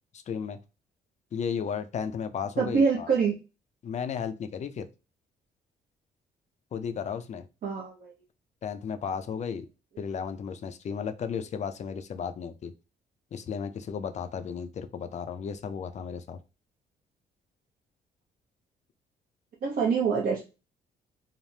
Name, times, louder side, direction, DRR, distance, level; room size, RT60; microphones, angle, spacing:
voice 1, 0.3-0.6 1.3-3.1 3.8-4.9 6.7-7.5 8.6-9.7 10.0-12.7 13.3-16.4, left 7 dB, 40° left, 0.4 m, -34 dB
voice 2, 2.6-3.4 7.6-8.1 19.6-20.4, right 5 dB, 55° right, 0.7 m, -25 dB
3.3 x 2.0 x 2.7 m
cardioid pair, 105°, 18 cm